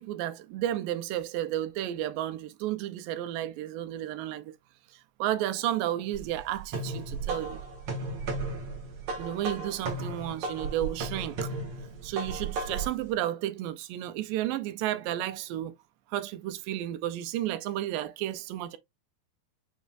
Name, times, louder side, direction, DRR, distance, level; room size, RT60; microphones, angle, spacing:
voice 1, 0.0-4.5 4.9-7.6 9.2-11.4 12.0-15.8 16.1-18.8, right 12 dB, 85° right, 2.3 m, -32 dB
sound 1, 6.1-13.0, right 3 dB, 50° right, 2.0 m, -35 dB
7.1 x 3.1 x 2.4 m
omnidirectional pair, 4.1 m